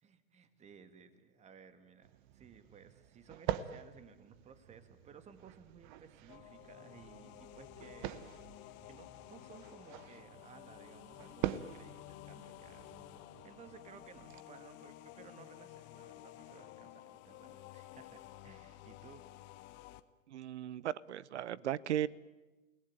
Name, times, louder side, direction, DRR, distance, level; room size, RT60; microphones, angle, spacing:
voice 1, 0.0-8.3 8.6-19.2, right 6 dB, 15° right, 11 dB, 2.0 m, -58 dB
sound 1, 2.0-14.4, right 12 dB, 35° right, 1.2 m, -45 dB
sound 2, 6.3-20.0, left 15 dB, 25° left, 1.1 m, -53 dB
voice 2, 20.3-22.1, right 11 dB, 55° right, 22 dB, 0.8 m, -36 dB
29.0 x 19.0 x 9.0 m, 1.2 s
hypercardioid pair, 120°, 42 cm